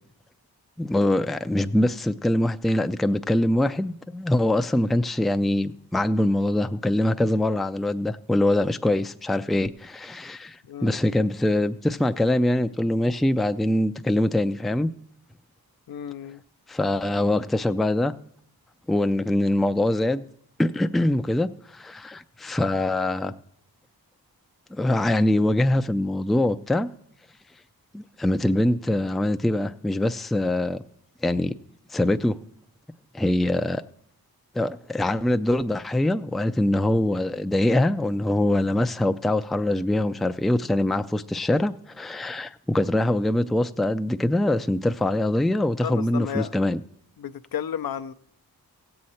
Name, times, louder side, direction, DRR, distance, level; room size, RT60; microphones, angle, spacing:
voice 1, 0.8-14.9 16.7-18.1 18.9-20.2 20.6-23.3 24.7-26.9 27.9-30.8 31.2-31.5 31.9-32.4 33.1-33.8 34.5-46.8, left 1 dB, ahead, 0.4 m, -23 dB
voice 2, 10.6-11.0 15.9-16.4 45.8-46.5 47.2-48.1, left 9 dB, 65° left, 0.6 m, -33 dB
16.5 x 7.8 x 4.2 m
cardioid pair, 70°, 38 cm